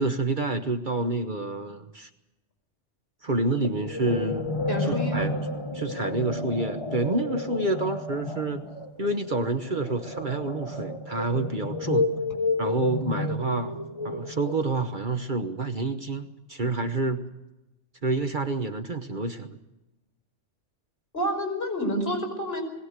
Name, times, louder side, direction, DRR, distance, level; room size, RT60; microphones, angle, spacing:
voice 1, 0.0-2.1 3.2-4.5 4.9-5.4 5.7-8.6 9.0-12.1 12.6-13.8 14.0-17.2 18.0-19.6, right 3 dB, 45° right, 7 dB, 1.2 m, -28 dB
sound 1, 3.6-15.0, left 2 dB, 25° left, 1.3 m, -31 dB
voice 2, 4.7-5.4 21.1-22.6, equal, 55° left, 3 dB, 5.8 m, -29 dB
21.0 x 18.0 x 8.1 m, 0.97 s
omnidirectional pair, 1.2 m